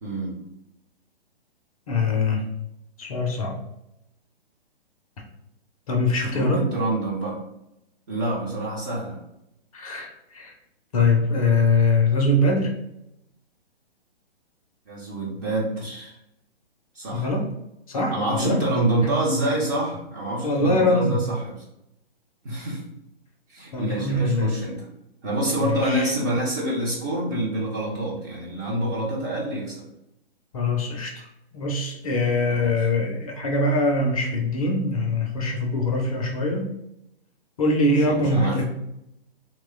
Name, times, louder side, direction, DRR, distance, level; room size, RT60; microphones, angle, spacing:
voice 1, 0.0-0.4 6.2-7.4 8.1-9.2 14.9-16.2 16.9-17.3 18.1-21.6 22.4-22.8 23.5-24.9 25.2-29.8 32.5-32.7 37.9-38.6, right 1 dB, 15° right, -6 dB, 0.5 m, -27 dB
voice 2, 1.9-2.5 3.0-3.6 5.9-6.6 9.7-10.5 10.9-12.7 17.1-17.4 17.9-18.6 19.0-19.2 20.4-21.2 23.7-24.5 25.6-26.1 30.5-31.3 31.5-36.7 37.6-38.6, left 2 dB, 35° left, 1 dB, 0.5 m, -23 dB
2.9 x 2.1 x 3.4 m, 0.83 s
figure-of-eight pair, 125°, 31 cm